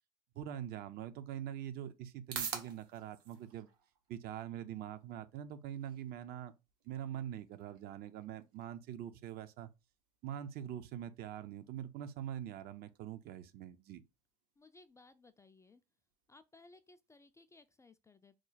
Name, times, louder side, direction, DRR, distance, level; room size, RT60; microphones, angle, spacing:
voice 1, 0.3-3.7 4.1-6.5 6.8-9.7 10.2-14.0, right 10 dB, 50° right, 0.6 m, -44 dB
sound 1, 1.7-17.8, right 7 dB, 70° right, 0.9 m, -53 dB
voice 2, 14.6-15.8 16.3-18.4, left 3 dB, 15° left, 0.4 m, -61 dB
3.1 x 2.2 x 3.9 m
hypercardioid pair, 70°, 20 cm